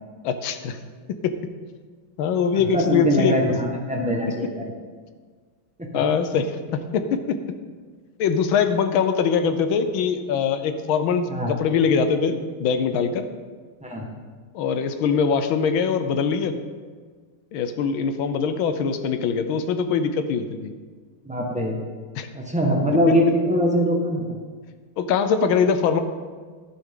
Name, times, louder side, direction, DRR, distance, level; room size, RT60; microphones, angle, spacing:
voice 1, 0.2-0.8 1.1-1.4 2.2-3.5 5.9-7.4 8.2-13.3 14.5-16.6 17.5-20.7 22.2-22.3 23.1-23.2 25.0-26.0, left 6 dB, 75° left, 9 dB, 1.5 m, -22 dB
voice 2, 2.5-4.7 5.8-6.0 9.6-9.7 11.3-11.5 13.8-14.1 21.2-21.8 22.3-24.3, equal, 5° right, -1 dB, 1.1 m, -23 dB
11.5 x 10.5 x 3.8 m, 1.5 s
omnidirectional pair, 2.3 m